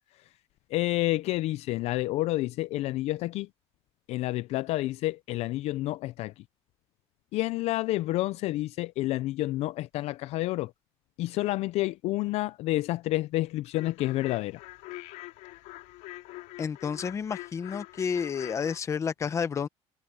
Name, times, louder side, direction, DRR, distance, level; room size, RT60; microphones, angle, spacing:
voice 1, 0.7-3.5 4.1-6.3 7.3-10.7 11.2-14.6, left 17 dB, 55° left, 0.4 m, -29 dB
sound 1, 13.7-18.8, left 19 dB, 85° left, 3.8 m, -44 dB
voice 2, 16.6-19.7, left 6 dB, 20° left, 0.8 m, -30 dB
cardioid pair, 175°, 13 cm